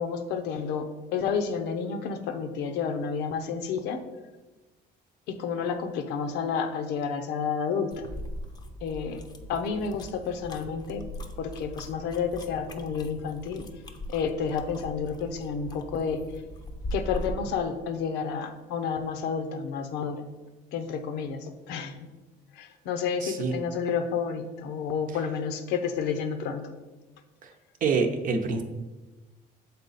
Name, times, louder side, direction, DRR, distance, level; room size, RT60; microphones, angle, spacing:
voice 1, 0.0-4.0 5.3-8.1 8.8-9.2 9.5-11.0 11.4-13.6 14.1-16.2 16.9-20.2 20.7-22.1 22.6-26.7, left 6 dB, 90° left, 7 dB, 0.7 m, -30 dB
sound 1, 7.9-17.6, equal, 25° left, 0.6 m, -40 dB
voice 2, 23.2-23.5 27.4-27.5 27.8-28.6, right 4 dB, 55° right, 5 dB, 0.8 m, -26 dB
6.7 x 4.1 x 4.0 m, 1.2 s
cardioid pair, 110°, 17 cm